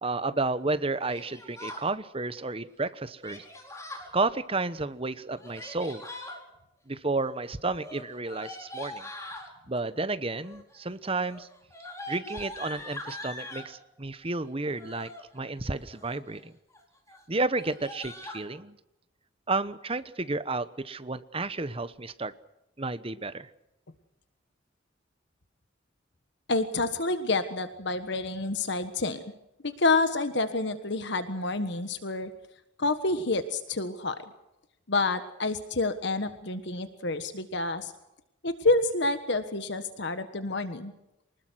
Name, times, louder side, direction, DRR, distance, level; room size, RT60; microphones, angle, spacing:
voice 1, 0.0-3.4 4.1-6.0 6.9-9.1 9.7-11.5 12.1-16.5 17.3-18.8 19.5-22.3 22.8-23.5, right 3 dB, 30° right, 13 dB, 1.1 m, -31 dB
Yell, 1.1-1.9 3.2-4.1 5.3-6.4 7.7-9.5 10.3-10.8 11.1-13.7 14.6-15.2 15.8-16.3 16.7-16.8 17.1-17.2 17.5-18.4, left 1 dB, 15° left, 4.7 m, -42 dB
voice 2, 26.5-29.2 29.6-32.3 32.8-34.2 34.9-37.9 38.4-40.9, left 3 dB, 60° left, 10 dB, 1.5 m, -28 dB
25.0 x 20.0 x 6.4 m, 0.89 s
head